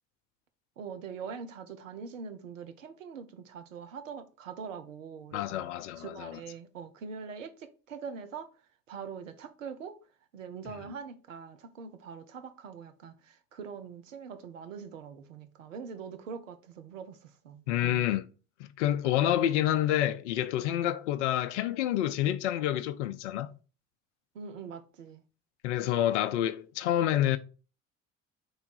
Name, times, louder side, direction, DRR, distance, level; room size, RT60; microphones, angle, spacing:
voice 1, 0.8-5.7 6.0-7.5 7.9-8.5 8.9-10.0 10.3-18.0 24.3-25.2, right 6 dB, 75° right, 0.7 m, -43 dB
voice 2, 5.3-6.4 17.7-18.3 18.6-23.5 25.6-27.4, left 12 dB, 65° left, 0.5 m, -28 dB
3.8 x 3.4 x 3.9 m
figure-of-eight pair, 55°, 39 cm